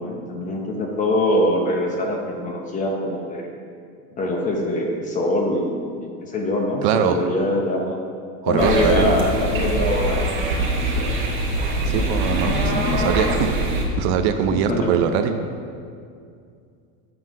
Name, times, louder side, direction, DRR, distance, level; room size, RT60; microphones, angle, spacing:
voice 1, 0.0-3.5 4.2-5.9 6.2-8.0 8.4-10.2 10.7-11.1 12.4-13.3 14.5-15.0, left 1 dB, 20° left, 1 dB, 0.9 m, -23 dB
voice 2, 6.8-7.2 8.4-9.2 11.8-13.5 14.0-15.3, right 8 dB, 60° right, 7 dB, 0.7 m, -22 dB
sound 1, 8.6-13.8, right 1 dB, 30° right, 1.5 m, -23 dB
7.8 x 5.6 x 6.3 m, 2.3 s
supercardioid pair, 165°, 38 cm